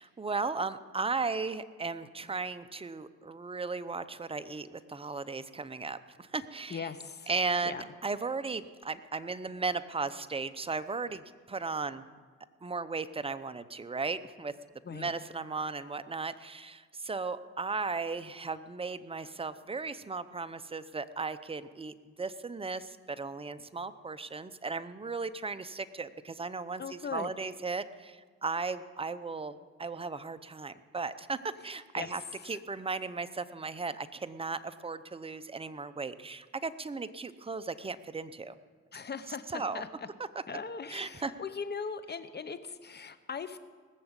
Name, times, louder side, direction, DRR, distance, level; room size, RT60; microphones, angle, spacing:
voice 1, 0.0-6.9 7.3-12.0 12.6-14.5 14.9-38.5 39.3-39.8 40.9-41.3, right 4 dB, 20° right, 12 dB, 0.7 m, -36 dB
voice 2, 6.7-7.3 7.7-7.8 14.8-15.1 26.8-27.3 32.0-32.1 38.9-39.9 40.5-43.6, left 5 dB, 35° left, 12 dB, 1.0 m, -39 dB
19.0 x 7.1 x 8.1 m, 1.5 s
cardioid pair, 90°, 30 cm